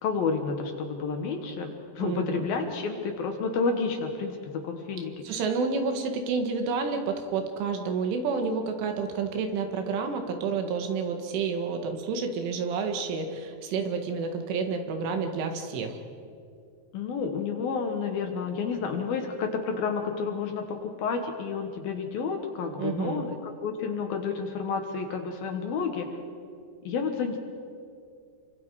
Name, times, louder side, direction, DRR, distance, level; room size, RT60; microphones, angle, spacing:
voice 1, 0.0-5.4 16.9-26.1 26.8-27.4, left 5 dB, 65° left, 4 dB, 2.7 m, -30 dB
voice 2, 2.0-2.4 5.2-16.0 22.8-23.2, right 5 dB, 85° right, 5 dB, 4.3 m, -29 dB
27.5 x 24.5 x 4.9 m, 2.4 s
omnidirectional pair, 5.4 m